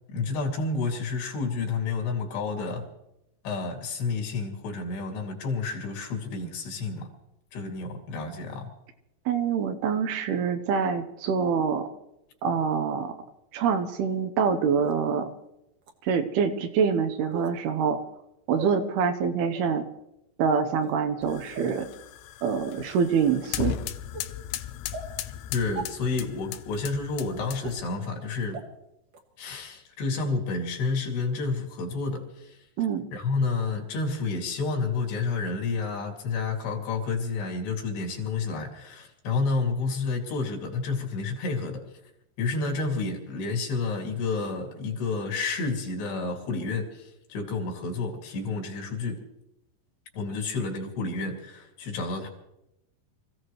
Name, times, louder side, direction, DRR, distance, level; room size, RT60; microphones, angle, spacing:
voice 1, 0.1-2.9 3.4-7.1 7.5-8.7 25.5-28.6 29.4-32.6 33.1-41.9 42.4-49.2 50.1-52.3, left 4 dB, 70° left, 2 dB, 4.3 m, -30 dB
voice 2, 9.3-11.9 12.4-13.1 13.5-15.3 16.0-18.0 18.5-19.9 20.4-21.9 22.4-23.8 32.8-33.1, right 6 dB, 75° right, 7 dB, 2.7 m, -25 dB
sound 1, 14.8-14.9 15.8-15.9 17.3-17.6 18.5-18.7 19.5-19.7 20.7-21.0 21.5-21.8 22.5-22.6 23.2-23.4 24.1-24.2 24.9-25.1 25.7-25.8 26.7-26.8 27.6-27.7 28.5-28.6 29.1-29.2, right 3 dB, 55° right, 1.9 m, -38 dB
sound 2, 21.2-27.9, left 12 dB, 90° left, 2.9 m, -37 dB
26.5 x 15.5 x 3.1 m, 0.86 s
omnidirectional pair, 4.9 m